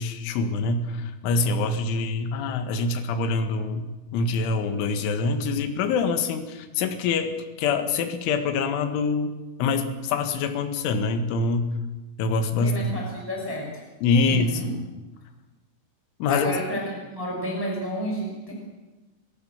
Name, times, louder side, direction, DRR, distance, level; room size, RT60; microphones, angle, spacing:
voice 1, 0.0-9.3 9.6-11.7 12.2-12.9 14.0-14.6 16.2-16.5, left 4 dB, 75° left, 7 dB, 4.1 m, -25 dB
voice 2, 12.5-13.8 14.2-14.7 16.3-18.5, equal, 5° right, 0 dB, 5.1 m, -31 dB
27.0 x 17.5 x 7.3 m, 1.2 s
omnidirectional pair, 5.7 m